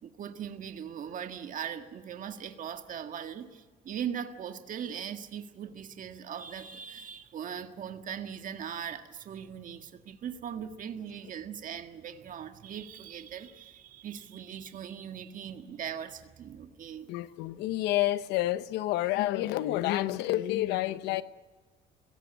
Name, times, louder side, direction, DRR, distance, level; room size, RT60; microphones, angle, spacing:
voice 1, 0.0-17.1, right 8 dB, 50° right, 1.7 m, -40 dB
voice 2, 17.1-21.2, left 15 dB, 90° left, 0.9 m, -29 dB
22.5 x 17.0 x 8.4 m
cardioid pair, 110°, 17 cm